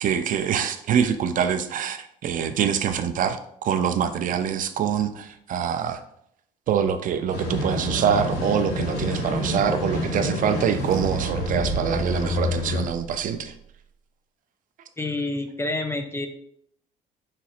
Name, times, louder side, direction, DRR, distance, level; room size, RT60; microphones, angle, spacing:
voice 1, 0.0-6.0 6.7-13.5, right 8 dB, 55° right, 9 dB, 0.4 m, -25 dB
sound 1, 7.3-12.8, left 1 dB, 75° left, 1.4 m, -28 dB
sound 2, 10.3-13.6, right 4 dB, 80° right, 0.7 m, -37 dB
voice 2, 15.0-16.3, left 2 dB, 15° left, 6 dB, 0.5 m, -28 dB
5.0 x 4.2 x 2.4 m, 0.70 s
cardioid pair, 110°, 17 cm